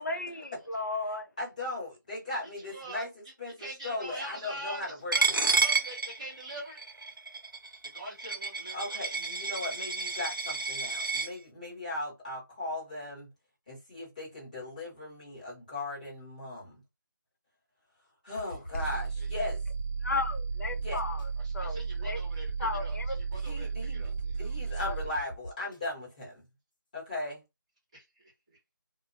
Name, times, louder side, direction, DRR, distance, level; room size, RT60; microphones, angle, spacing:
voice 1, 0.0-1.3 20.0-21.3 21.5-22.2 22.6-23.2 24.8-25.0, left 3 dB, 55° left, 0.6 m, -34 dB
voice 2, 1.4-5.4 8.7-13.3 13.7-16.8 18.2-19.6 20.7-21.0 23.4-26.4 26.9-27.4, left 2 dB, 20° left, 1.2 m, -38 dB
voice 3, 2.4-3.3 3.6-5.3 5.5-6.8 7.9-9.0 18.4-18.6 19.2-19.3 21.4-24.8 27.9-28.3, right 1 dB, 15° right, 0.9 m, -44 dB
Coin (dropping), 5.1-11.3, right 4 dB, 80° right, 0.7 m, -30 dB
sound 1, 18.4-19.0 19.5-19.9 20.3-21.3 22.0-22.1 22.5-22.6 22.9-23.5 24.0-24.4 24.9-25.8, equal, 70° left, 1.2 m, -43 dB
sound 2, 18.7-25.1, right 5 dB, 40° right, 0.6 m, -34 dB
2.4 x 2.1 x 2.5 m
figure-of-eight pair, 175°, 11 cm